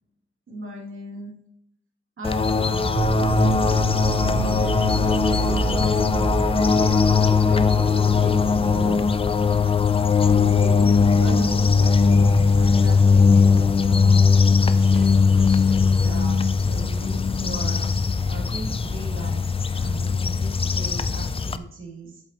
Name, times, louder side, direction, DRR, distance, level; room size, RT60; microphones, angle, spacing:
voice 1, 0.5-1.4 2.2-3.0 7.2-9.0 9.4-9.6 10.3-14.2 14.6-22.2, right 2 dB, 80° right, -1 dB, 2.6 m, -37 dB
sound 1, 2.2-21.6, left 5 dB, 30° left, 0.4 m, -19 dB
sound 2, 2.9-9.1, right 3 dB, 25° right, 0.5 m, -27 dB
voice 2, 4.2-6.1, left 3 dB, 75° left, -6 dB, 1.9 m, -39 dB
8.0 x 7.8 x 2.9 m, 0.71 s
wide cardioid pair, 155°, 20 cm